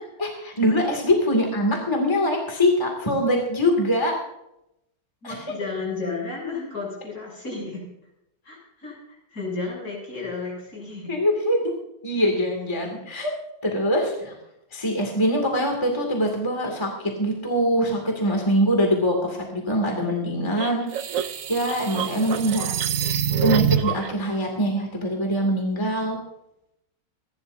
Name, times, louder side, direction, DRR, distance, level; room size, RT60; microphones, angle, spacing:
voice 1, 0.2-4.2 5.2-5.4 11.1-11.6 12.0-13.3 13.6-14.3 14.7-22.7 23.4-26.2, equal, 15° left, 1 dB, 2.3 m, -23 dB
voice 2, 5.2-7.9 8.4-11.1, left 3 dB, 55° left, -3 dB, 8.0 m, -33 dB
sound 1, 20.6-24.1, right 9 dB, 60° right, 1.0 m, -25 dB
27.5 x 12.0 x 2.7 m, 0.83 s
omnidirectional pair, 1.9 m